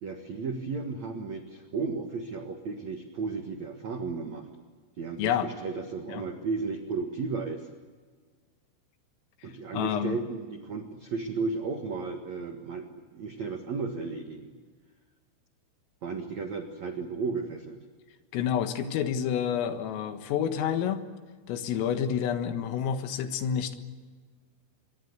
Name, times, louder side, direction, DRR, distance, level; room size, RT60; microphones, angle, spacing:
voice 1, 0.0-4.5 5.0-7.7 9.4-12.9 13.1-14.5 16.0-17.8, right 4 dB, 75° right, 5 dB, 1.6 m, -34 dB
voice 2, 9.7-10.2 18.3-21.0 21.5-23.8, left 8 dB, 80° left, 8 dB, 4.1 m, -29 dB
26.5 x 23.0 x 8.1 m, 1.5 s
omnidirectional pair, 5.9 m